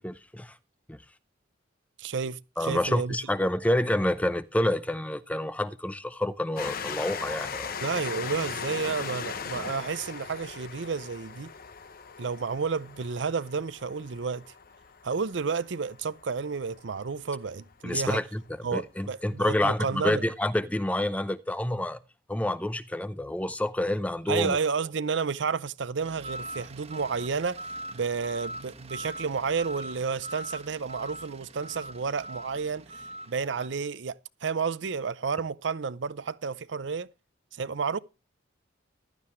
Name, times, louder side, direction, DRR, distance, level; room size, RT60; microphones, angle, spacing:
voice 1, 0.0-0.5 0.9-1.0 2.6-7.7 17.8-22.0 22.3-24.6, left 1 dB, 5° left, 0.5 m, -28 dB
voice 2, 2.0-3.2 7.8-11.5 12.2-14.4 15.0-18.2 18.6-20.3 24.3-27.6 27.9-32.9 33.3-37.1 37.6-38.0, right 5 dB, 70° right, 0.6 m, -31 dB
Train, 6.6-17.7 18.5-18.6 18.8-18.9, left 6 dB, 50° left, 0.9 m, -39 dB
sound 1, 26.0-33.7, right 1 dB, 35° right, 1.3 m, -42 dB
15.0 x 12.0 x 3.1 m
head